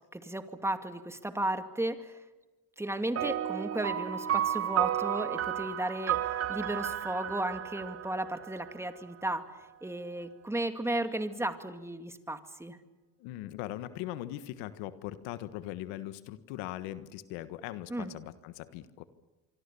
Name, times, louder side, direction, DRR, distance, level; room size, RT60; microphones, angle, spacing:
voice 1, 0.1-2.2 2.8-9.5 9.8-12.8 17.9-18.1, right 1 dB, 5° right, 8 dB, 2.3 m, -34 dB
sound 1, 3.2-8.9, right 11 dB, 40° right, 1.0 m, -32 dB
voice 2, 13.2-19.0, left 14 dB, 85° left, 13 dB, 1.5 m, -40 dB
26.0 x 24.5 x 7.0 m, 1.1 s
supercardioid pair, 95°, 37 cm